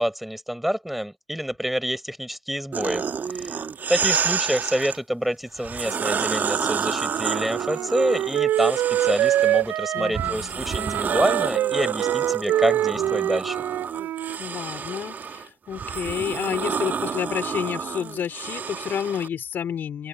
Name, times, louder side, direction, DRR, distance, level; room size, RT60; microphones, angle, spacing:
voice 1, 0.0-3.0 3.4-3.6 3.9-13.6, equal, 5° right, 6.3 m, -27 dB
sound 1, 2.7-5.0 5.6-9.7 10.1-19.3, right 6 dB, 55° right, 2.1 m, -29 dB
Wind instrument woodwind instrument, 7.1-14.4, right 13 dB, 75° right, 5.0 m, -25 dB
voice 2, 9.9-10.5 12.9-13.2 14.4-20.1, left 8 dB, 65° left, 4.5 m, -30 dB
open air
hypercardioid pair, 45°, 4 cm